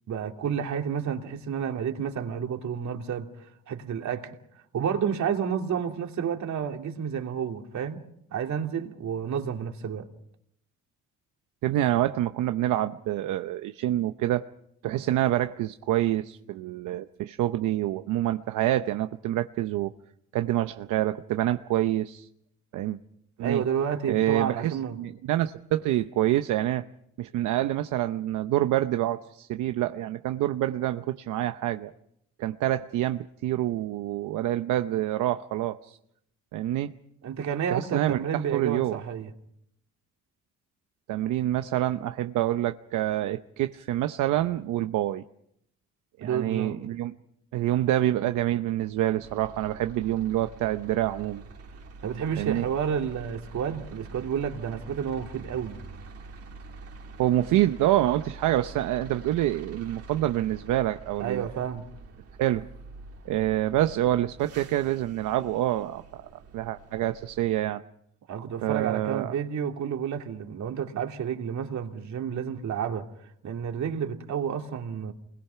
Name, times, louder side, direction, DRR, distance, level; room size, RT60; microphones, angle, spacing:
voice 1, 0.1-4.4 4.7-8.0 8.3-10.1 23.4-25.0 37.2-39.3 46.2-46.8 52.0-55.8 61.2-61.8 68.3-73.1 73.4-75.1, right 8 dB, 70° right, 2.9 m, -30 dB
voice 2, 11.6-14.5 14.8-19.9 20.3-22.3 22.7-23.0 23.4-23.6 24.1-26.9 27.2-31.9 32.4-36.0 36.5-36.9 37.7-39.0 41.1-45.2 46.2-47.1 47.5-51.4 52.4-52.7 57.2-61.5 62.4-62.7 63.2-67.8 68.6-69.3, right 14 dB, 90° right, 0.8 m, -27 dB
sound 1, 49.2-67.4, right 3 dB, 50° right, 2.1 m, -46 dB
28.5 x 21.5 x 5.8 m
cardioid pair, 90°, 30 cm